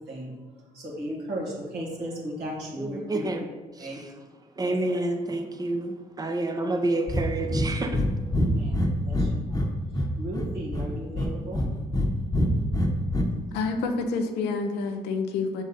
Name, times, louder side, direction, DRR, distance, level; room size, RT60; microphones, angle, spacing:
voice 1, 0.7-3.3 3.8-4.0 4.6-4.7 6.3-6.4 8.4-9.7 10.2-11.6, right 1 dB, 70° right, -4 dB, 1.9 m, -36 dB
voice 2, 2.8-3.5 3.7-4.1 4.6-8.1 13.5-13.6, right 2 dB, 20° right, 5 dB, 0.8 m, -29 dB
Breathing, 7.1-7.3 7.5-7.7 7.9-8.1 8.3-9.7 9.9-10.9 11.2-12.1 12.3-13.2, left 1 dB, 20° left, 1.0 m, -24 dB
voice 3, 13.5-15.6, left 4 dB, 75° left, 5 dB, 0.7 m, -28 dB
6.1 x 3.9 x 4.1 m, 1.2 s
hypercardioid pair, 50°, 17 cm